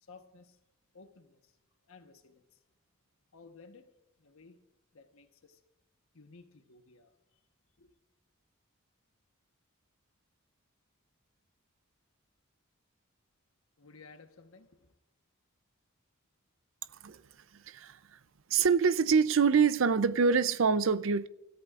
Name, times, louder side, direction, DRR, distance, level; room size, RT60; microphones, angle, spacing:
voice 1, 0.0-0.6 0.9-1.6 1.9-2.6 3.3-3.9 4.2-4.6 4.9-5.6 6.1-7.4 7.8-8.0 13.8-15.0, left 4 dB, 75° left, 1.2 m, -56 dB
voice 2, 17.5-18.0 18.5-21.3, right 5 dB, 60° right, 0.5 m, -25 dB
29.5 x 14.0 x 2.5 m
head